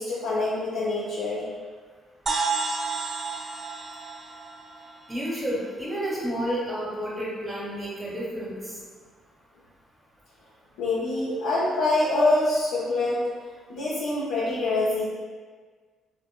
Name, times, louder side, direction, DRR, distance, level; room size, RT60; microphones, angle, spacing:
voice 1, 0.0-1.4 10.8-13.3 13.7-15.1, left 2 dB, 75° left, -8 dB, 0.6 m, -25 dB
sound 1, 2.3-6.0, right 4 dB, 40° right, 0.4 m, -31 dB
voice 2, 5.1-8.5 11.2-11.3, equal, 20° right, -8 dB, 1.5 m, -30 dB
3.8 x 3.7 x 2.3 m, 1.5 s
hypercardioid pair, 45°, 0 cm